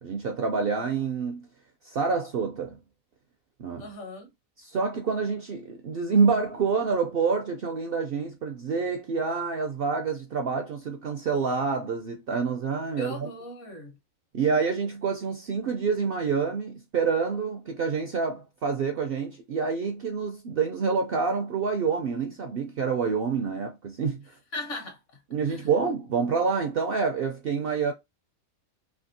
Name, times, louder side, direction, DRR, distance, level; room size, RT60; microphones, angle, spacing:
voice 1, 0.0-1.5 1.8-2.8 3.6-3.9 4.6-13.3 14.3-24.2 25.3-27.9, right 5 dB, 60° right, 0.6 m, -27 dB
voice 2, 3.8-4.3 13.0-14.0 24.5-25.0 25.5-25.7, left 2 dB, 65° left, 1.3 m, -38 dB
3.4 x 2.7 x 2.6 m
omnidirectional pair, 1.4 m